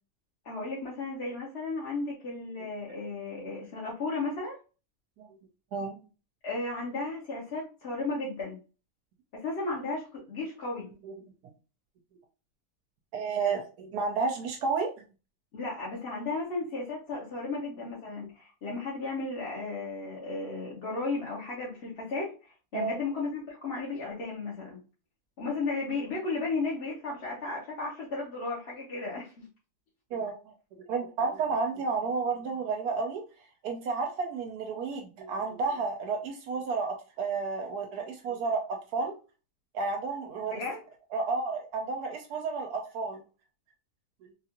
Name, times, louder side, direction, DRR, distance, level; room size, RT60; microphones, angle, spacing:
voice 1, 0.4-4.6 6.4-8.6 9.3-10.9 15.5-24.8 25.4-29.5 40.5-40.8, left 3 dB, 50° left, -5 dB, 1.0 m, -34 dB
voice 2, 13.1-14.9 22.7-23.0 30.1-30.5 30.9-33.2 33.6-39.1 39.7-40.6 41.1-43.2, right 4 dB, 80° right, 3 dB, 1.1 m, -31 dB
3.5 x 2.4 x 2.9 m, 0.34 s
omnidirectional pair, 1.6 m